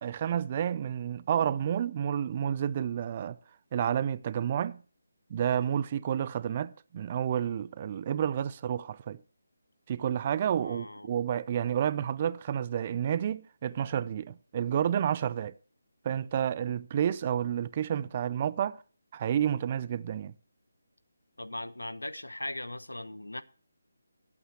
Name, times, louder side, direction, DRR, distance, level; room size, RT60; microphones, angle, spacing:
voice 1, 0.0-3.4 3.7-4.8 5.3-9.2 9.9-15.5 16.0-18.8 19.1-20.3, right 9 dB, 30° right, 0.5 m, -30 dB
voice 2, 10.6-11.1 21.4-23.4, left 1 dB, 90° left, 0.9 m, -39 dB
20.0 x 8.5 x 3.0 m
figure-of-eight pair, 155°, 0 cm